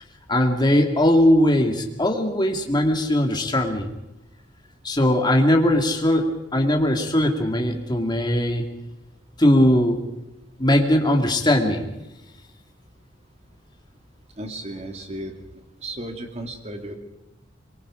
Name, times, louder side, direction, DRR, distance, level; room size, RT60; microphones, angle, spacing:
voice 1, 0.3-3.9 4.8-8.6 9.4-10.0 10.6-11.9, left 1 dB, 25° left, 3 dB, 2.4 m, -19 dB
voice 2, 14.4-17.0, right 1 dB, 35° right, 5 dB, 2.6 m, -35 dB
24.0 x 22.5 x 5.1 m, 0.97 s
head